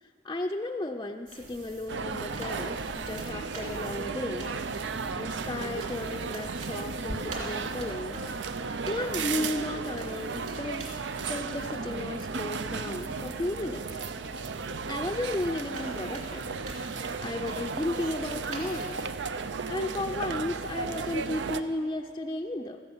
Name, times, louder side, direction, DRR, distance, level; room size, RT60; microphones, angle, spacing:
voice 1, 0.0-4.5 5.1-8.2 8.5-10.9 11.2-14.0 14.9-16.5 17.2-19.1 19.7-22.8, left 1 dB, 20° left, 2 dB, 0.4 m, -34 dB
sound 1, 1.3-19.2, right 2 dB, 45° right, 2.6 m, -47 dB
Bird vocalization bird call bird song, 1.4-7.1, equal, 65° right, 1.4 m, -48 dB
sound 2, 1.9-21.6, right 4 dB, 85° right, 0.6 m, -34 dB
14.5 x 12.0 x 7.2 m, 2.2 s
head